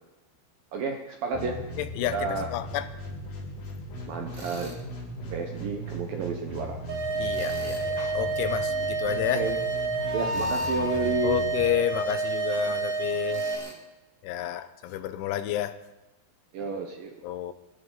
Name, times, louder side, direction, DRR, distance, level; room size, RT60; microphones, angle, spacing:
voice 1, 0.7-1.6 2.1-2.5 4.1-4.7 5.3-6.8 9.4-9.5 10.1-11.4 16.5-17.2, right 4 dB, 80° right, 2.0 m, -31 dB
sound 1, 1.3-12.3, equal, 55° left, 7.5 m, -38 dB
voice 2, 1.8-2.9 7.2-9.5 11.2-13.4 14.2-15.8 17.2-17.5, left 12 dB, 80° left, 3.1 m, -30 dB
Tools, 4.3-4.8 7.3-7.9 10.3-10.8 13.3-13.8, right 1 dB, 25° right, 2.2 m, -44 dB
sound 2, 6.9-13.5, right 3 dB, 65° right, 4.4 m, -29 dB
26.5 x 13.5 x 4.1 m
omnidirectional pair, 5.8 m